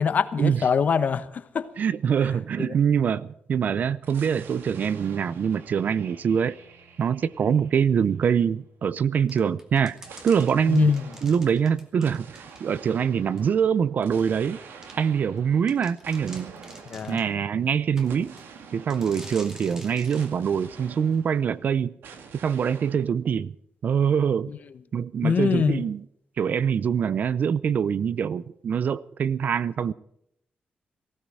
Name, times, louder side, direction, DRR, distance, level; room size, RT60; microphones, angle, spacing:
voice 1, 0.0-1.7 2.6-2.7 10.7-11.0 16.9-17.2 24.5-24.6 25.2-25.9, left 6 dB, 50° left, 1.0 m, -23 dB
voice 2, 1.8-6.6 7.0-10.0 10.2-10.9 11.2-12.3 12.6-14.6 15.0-16.5 17.1-18.3 18.7-22.0 22.4-23.5 23.8-24.5 24.9-26.0 26.4-29.9, right 7 dB, 50° right, 0.6 m, -24 dB
sound 1, 4.0-8.7 10.0-21.7 22.0-23.1, right 6 dB, 90° right, 2.0 m, -47 dB
sound 2, 9.3-12.9 13.4-13.5 14.2-14.3 14.8-15.0 15.4-15.5 15.7-17.3 18.0-18.5 18.9-20.3, right 1 dB, 15° right, 2.4 m, -46 dB
18.5 x 15.5 x 4.9 m
wide cardioid pair, 135°, 4 cm